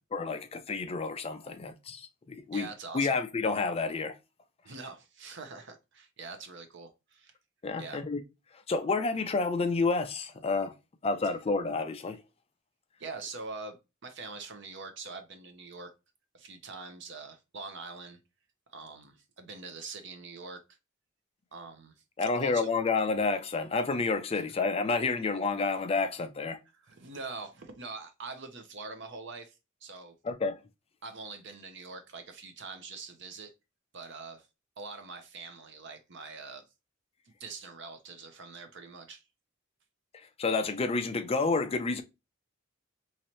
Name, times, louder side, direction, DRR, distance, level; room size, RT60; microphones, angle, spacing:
voice 1, 0.1-2.7 2.9-4.2 7.6-8.2 8.7-10.7 11.0-12.2 22.2-26.6 30.2-30.6 40.4-42.0, left 4 dB, 30° left, 0.4 m, -29 dB
voice 2, 2.5-3.2 4.6-7.3 7.7-8.0 11.2-11.3 13.0-13.8 14.0-15.9 16.3-18.2 18.7-20.6 21.5-21.9 22.2-22.7 26.7-30.1 31.0-33.5 33.9-34.5 34.8-36.7 37.4-39.2, right 4 dB, 60° right, 0.8 m, -44 dB
3.1 x 2.8 x 2.9 m
head